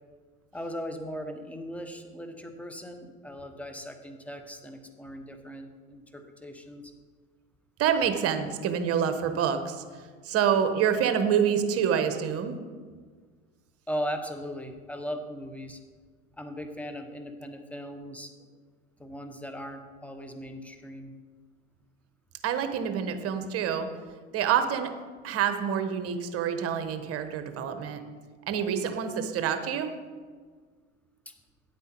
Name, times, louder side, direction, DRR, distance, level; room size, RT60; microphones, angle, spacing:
voice 1, 0.5-6.9 13.9-15.8 16.4-18.5 19.0-21.1 31.2-31.3, equal, 5° left, 6 dB, 1.1 m, -38 dB
voice 2, 7.8-9.8 10.2-12.6 22.4-23.9 24.3-24.9 25.2-28.0 28.5-29.9, right 8 dB, 45° right, 8 dB, 1.1 m, -27 dB
9.2 x 8.2 x 4.5 m, 1.5 s
supercardioid pair, 95°, 34 cm